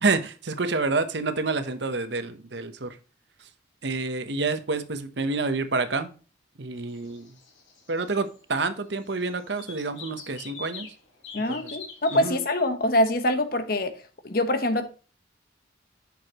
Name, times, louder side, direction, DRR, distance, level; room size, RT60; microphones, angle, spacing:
voice 1, 0.0-3.0 3.8-6.1 6.6-7.3 7.9-10.9 11.4-11.8 12.1-12.4, right 3 dB, 65° right, 0.9 m, -28 dB
sound 1, 6.8-8.4 8.6-8.7 9.0-11.0 11.2-12.2, left 4 dB, 85° left, 3.3 m, -43 dB
voice 2, 11.3-13.9 14.2-14.9, left 1 dB, 50° left, 1.2 m, -24 dB
7.9 x 6.5 x 3.0 m
head